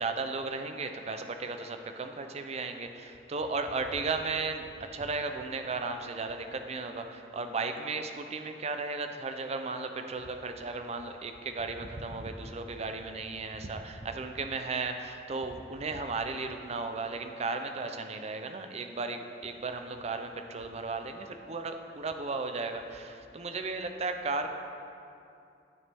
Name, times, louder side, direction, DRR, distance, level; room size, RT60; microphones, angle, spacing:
voice 1, 0.0-24.5, right 3 dB, 35° right, 7 dB, 0.5 m, -35 dB
12.0 x 7.0 x 3.5 m, 2.6 s
head